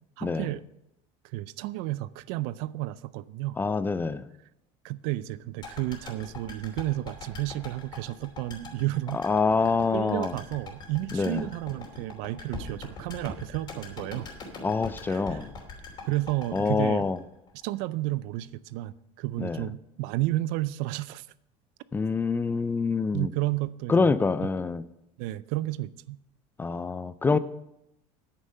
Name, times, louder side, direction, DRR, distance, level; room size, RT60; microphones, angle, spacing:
voice 1, 0.2-0.6 1.3-3.6 4.8-9.2 9.9-14.3 15.1-15.5 16.1-17.1 17.6-21.3 23.1-24.1 24.4-24.5 25.2-26.2, right 16 dB, 70° right, 0.5 m, -32 dB
voice 2, 3.6-4.3 9.1-10.3 11.1-11.5 14.6-15.5 16.5-17.2 19.4-19.7 21.9-23.3 23.9-24.8 26.6-27.4, left 4 dB, 15° left, 0.3 m, -26 dB
sound 1, 5.6-17.8 18.1-18.2, left 3 dB, 30° left, 2.9 m, -42 dB
9.9 x 9.3 x 5.4 m
cardioid pair, 150°, 15 cm